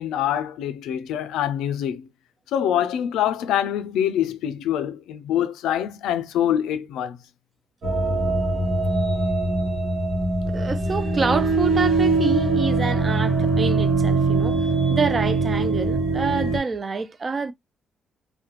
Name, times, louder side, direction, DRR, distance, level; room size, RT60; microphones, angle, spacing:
voice 1, 0.0-2.1 2.5-7.2, left 10 dB, 90° left, 0.3 m, -25 dB
sound 1, 7.8-16.6, right 3 dB, 55° right, 0.9 m, -22 dB
voice 2, 10.5-14.6 14.9-17.5, right 4 dB, 35° right, 0.4 m, -27 dB
2.4 x 2.1 x 2.8 m
cardioid pair, 90°, 0 cm